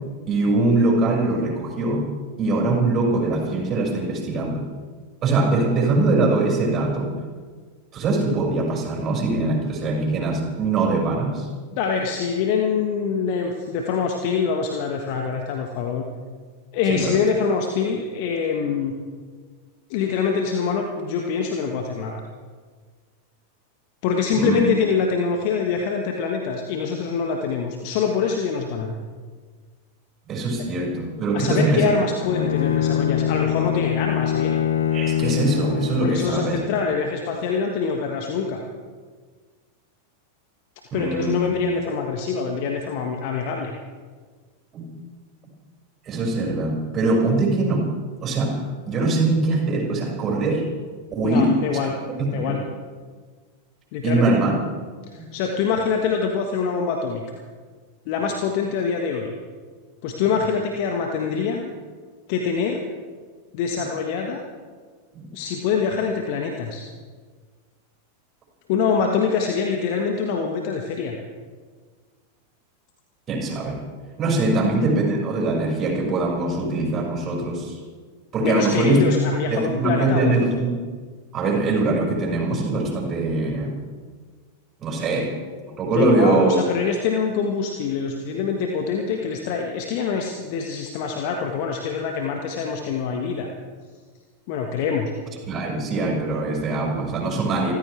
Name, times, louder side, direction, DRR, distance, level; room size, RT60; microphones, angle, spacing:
voice 1, 0.3-2.1 2.4-4.7 5.2-7.1 7.9-11.5 16.9-17.1 24.4-24.6 30.3-31.9 34.9-36.6 40.9-41.5 44.7-44.9 46.1-47.8 48.2-50.6 51.1-51.8 52.1-52.6 54.0-54.5 55.2-55.3 65.1-65.3 73.3-73.8 74.2-77.8 78.3-79.0 79.5-80.8 81.3-83.8 84.8-85.3 85.6-86.6 95.5-97.7, right 2 dB, 30° right, -1 dB, 5.9 m, -22 dB
voice 2, 11.7-16.0 16.7-18.9 19.9-22.2 24.0-29.0 31.3-34.6 36.0-38.6 40.9-43.7 51.2-52.0 52.3-52.6 53.9-54.4 55.1-57.2 58.1-59.3 60.0-61.7 62.3-62.9 63.5-64.4 65.3-66.8 68.7-71.2 74.5-74.6 78.4-80.5 85.9-93.5 94.5-95.1, left 5 dB, 45° left, 3 dB, 1.6 m, -24 dB
Bowed string instrument, 32.2-36.4, left 10 dB, 65° left, 1.2 m, -23 dB
27.5 x 15.0 x 3.5 m, 1.5 s
figure-of-eight pair, 90°, 0 cm